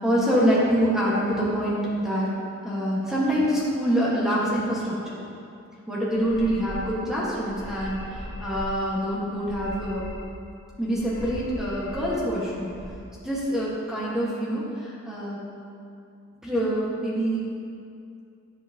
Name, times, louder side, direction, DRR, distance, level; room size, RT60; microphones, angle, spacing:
voice 1, 0.0-2.3 2.6-5.2 5.9-10.0 10.8-12.7 13.2-15.4 16.4-17.4, equal, ahead, -8 dB, 1.3 m, -25 dB
sound 1, 6.1-7.0 7.4-8.7 9.3-10.4 10.9-12.3 12.6-12.9, equal, 60° left, 0.8 m, -39 dB
10.5 x 5.6 x 2.8 m, 2.5 s
head